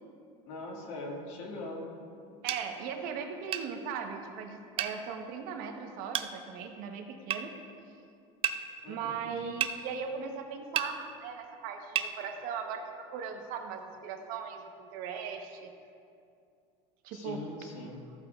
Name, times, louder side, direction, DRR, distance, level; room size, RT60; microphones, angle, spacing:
voice 1, 0.5-1.9 8.8-9.3 17.1-18.0, left 2 dB, 80° left, -1 dB, 2.1 m, -41 dB
voice 2, 2.4-7.5 8.9-15.7 17.0-17.4, right 6 dB, 60° right, 4 dB, 1.0 m, -38 dB
sound 1, 2.5-2.6 3.5-3.7 4.8-5.0 6.1-6.3 7.3-7.4 8.4-8.6 9.6-9.8 10.7-10.9 11.9-12.1, right 9 dB, 35° right, 0.4 m, -30 dB
14.0 x 8.5 x 2.4 m, 2.5 s
supercardioid pair, 135°, 17 cm